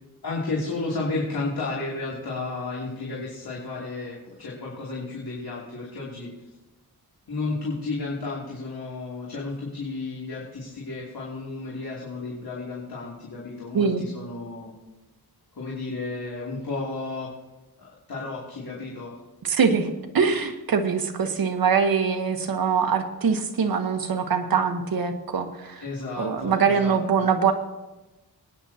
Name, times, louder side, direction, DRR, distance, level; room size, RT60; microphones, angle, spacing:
voice 1, 0.2-6.3 7.3-14.7 15.5-17.3 17.8-19.2 25.8-27.3, left 3 dB, 70° left, -5 dB, 3.0 m, -32 dB
voice 2, 19.4-25.8 26.2-27.5, right 6 dB, 65° right, 4 dB, 1.2 m, -23 dB
24.5 x 9.7 x 2.9 m, 1.1 s
cardioid pair, 75°, 38 cm